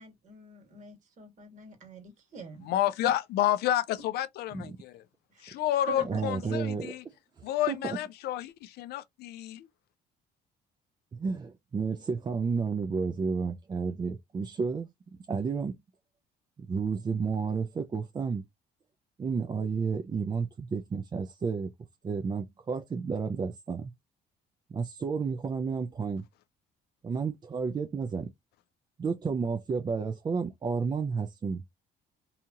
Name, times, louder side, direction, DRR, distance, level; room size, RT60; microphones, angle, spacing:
voice 1, 0.0-3.1 5.3-5.5 5.9-6.6, right 2 dB, 45° right, 1.6 m, -44 dB
voice 2, 2.6-5.0 5.4-6.9 7.4-9.7, left 12 dB, 70° left, 0.4 m, -30 dB
voice 3, 6.0-6.9 7.4-8.0 11.1-14.9 15.3-15.8 16.6-18.4 19.2-21.7 22.0-23.9 24.7-26.3 27.0-28.3 29.0-31.6, right 5 dB, 25° right, 0.4 m, -31 dB
2.8 x 2.4 x 2.7 m
cardioid pair, 110°, 17 cm